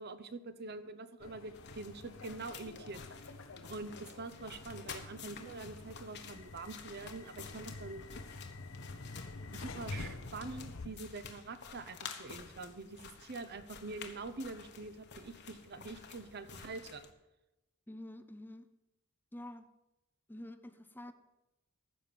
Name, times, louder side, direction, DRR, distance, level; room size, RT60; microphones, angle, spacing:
voice 1, 0.0-3.0 3.7-8.0 9.5-17.0, right 3 dB, 55° right, 0.8 m, -45 dB
sound 1, 1.2-10.9, left 3 dB, 75° left, 0.9 m, -48 dB
sound 2, 1.5-17.1, left 6 dB, 55° left, 1.2 m, -51 dB
voice 2, 17.9-18.7 19.3-19.7 20.3-21.1, left 1 dB, 10° left, 0.6 m, -48 dB
15.0 x 6.0 x 7.0 m
head